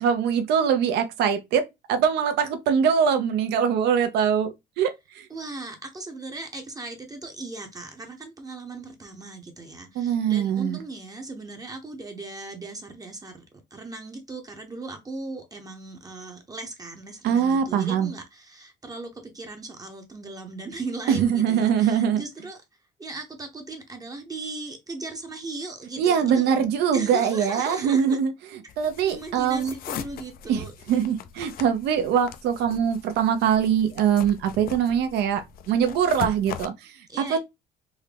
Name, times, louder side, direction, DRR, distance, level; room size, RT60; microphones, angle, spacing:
voice 1, 0.0-1.6 1.9-5.3 9.9-10.8 17.2-18.1 21.1-22.2 26.0-29.7 30.5-36.9 37.3-37.4, right 8 dB, 80° right, 0.7 m, -23 dB
voice 2, 5.3-13.4 13.7-22.6 23.0-26.5 26.9-28.2 28.6-28.7 29.1-30.7 37.1-37.4, right 3 dB, 20° right, 0.7 m, -38 dB
sound 1, 28.7-36.7, left 8 dB, 60° left, 0.5 m, -40 dB
3.6 x 2.1 x 3.3 m
cardioid pair, 110°, 17 cm